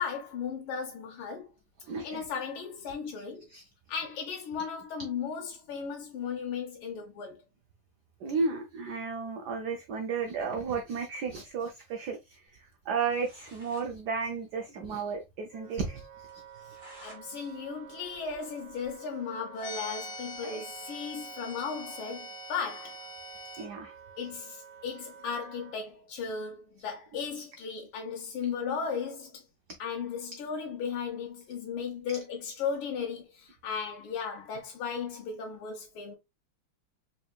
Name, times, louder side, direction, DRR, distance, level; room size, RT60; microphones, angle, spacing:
voice 1, 0.0-1.5 2.0-3.5 3.9-7.4 17.0-23.0 24.2-29.4 29.8-36.1, left 6 dB, 80° left, 1.7 m, -36 dB
voice 2, 1.9-2.2 3.2-3.3 3.5-3.6 8.2-16.0 20.4-20.6 23.6-23.9, right 5 dB, 75° right, 0.9 m, -33 dB
sound 1, 12.8-12.9 13.1-13.9 14.2-14.3 14.6-14.7 15.1-15.2 15.6-15.7 16.3-17.2 17.6-19.0, equal, 25° right, 1.8 m, -55 dB
Wind instrument woodwind instrument, 15.5-25.8, right 8 dB, 55° right, 1.3 m, -51 dB
sound 2, 19.6-23.7, left 1 dB, 30° left, 1.2 m, -43 dB
4.5 x 3.3 x 2.3 m
omnidirectional pair, 2.4 m